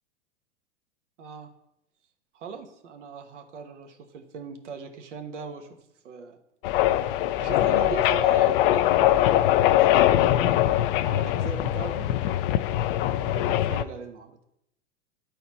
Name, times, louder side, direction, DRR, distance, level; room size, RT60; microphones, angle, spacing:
voice 1, 1.2-1.5 2.3-5.8 6.0-6.4 7.4-10.7 11.1-12.1 13.2-14.4, right 5 dB, 75° right, 6 dB, 1.3 m, -39 dB
sound 1, 6.6-13.8, left 13 dB, 50° left, 0.4 m, -22 dB
9.6 x 4.2 x 4.1 m, 0.77 s
hypercardioid pair, 110°, 36 cm